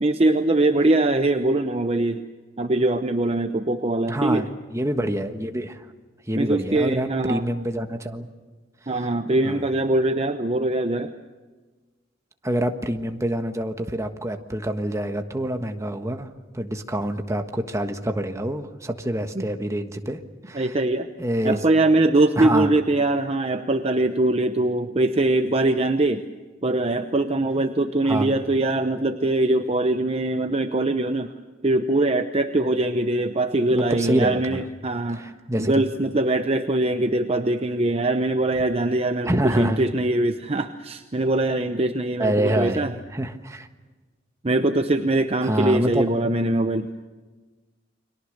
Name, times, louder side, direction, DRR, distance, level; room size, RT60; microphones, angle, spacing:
voice 1, 0.0-2.2 2.6-4.4 6.4-7.4 8.9-11.2 19.4-19.5 20.5-21.1 21.4-26.3 26.6-31.3 31.6-35.2 35.6-42.9 44.4-46.9, right 2 dB, 30° right, 8 dB, 0.8 m, -22 dB
voice 2, 4.1-5.8 6.3-8.3 9.4-9.6 12.4-16.3 16.5-20.2 20.5-20.7 21.2-21.6 22.4-22.8 28.1-28.4 33.7-34.6 35.1-35.8 39.2-39.8 42.2-43.7 45.4-46.0, right 1 dB, 15° right, 6 dB, 1.4 m, -26 dB
30.0 x 23.0 x 6.6 m, 1.3 s
head